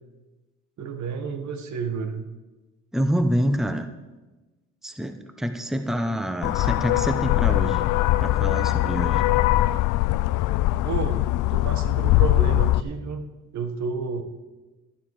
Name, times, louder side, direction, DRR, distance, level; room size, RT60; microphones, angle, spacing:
voice 1, 0.8-2.3 10.8-13.2 13.5-14.2, right 5 dB, 70° right, 8 dB, 1.5 m, -31 dB
voice 2, 2.9-3.9 4.8-7.8 8.2-9.2, equal, ahead, 8 dB, 0.9 m, -26 dB
sound 1, 6.4-12.8, left 16 dB, 90° left, 0.5 m, -21 dB
12.0 x 11.0 x 4.8 m, 1.1 s
cardioid pair, 90°, 30 cm